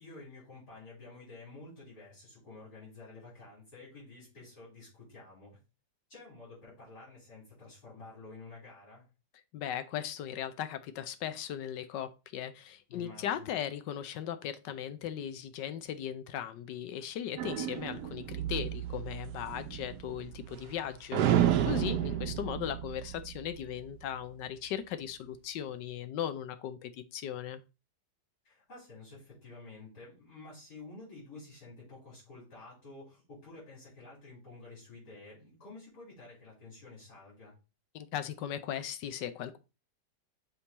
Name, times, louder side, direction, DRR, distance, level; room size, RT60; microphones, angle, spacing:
voice 1, 0.0-5.6 6.1-9.0 12.9-13.5 21.8-22.2 28.4-37.6, left 3 dB, 65° left, -8 dB, 5.1 m, -50 dB
voice 2, 9.5-27.6 37.9-39.6, left 10 dB, 80° left, 11 dB, 1.3 m, -38 dB
sound 1, 17.4-20.8 21.1-23.8, right 11 dB, 70° right, 1.1 m, -31 dB
7.0 x 3.8 x 4.1 m, 0.29 s
omnidirectional pair, 1.9 m